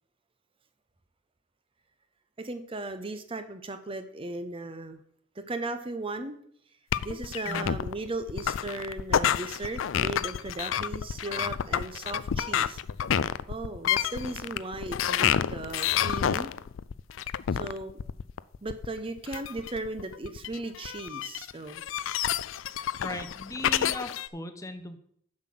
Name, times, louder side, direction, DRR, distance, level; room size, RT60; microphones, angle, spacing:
voice 1, 2.4-5.0 5.4-6.4 7.0-12.8 13.5-16.5 17.6-18.0 18.6-21.8, right 2 dB, 30° right, 9 dB, 0.7 m, -37 dB
sound 1, 6.9-24.3, left 9 dB, 85° left, 0.4 m, -29 dB
voice 2, 23.0-25.0, left 1 dB, 15° left, 9 dB, 0.8 m, -38 dB
7.4 x 5.9 x 7.6 m, 0.66 s
head